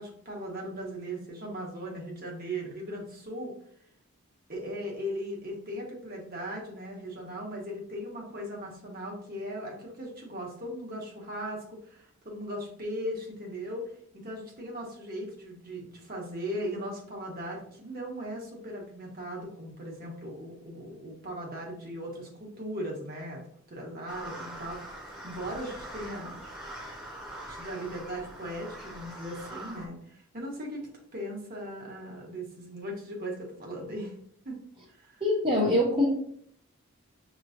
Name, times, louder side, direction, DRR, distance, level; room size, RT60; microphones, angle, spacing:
voice 1, 0.0-3.5 4.5-23.4 23.7-26.4 27.5-30.8 31.1-34.1 34.4-34.6 34.9-35.2, equal, 40° right, -1 dB, 1.2 m, -38 dB
sound 1, 24.1-29.9, right 1 dB, 5° right, 1.0 m, -43 dB
voice 2, 35.2-36.1, left 1 dB, 25° right, -5 dB, 0.7 m, -23 dB
6.6 x 3.0 x 2.5 m, 0.65 s
head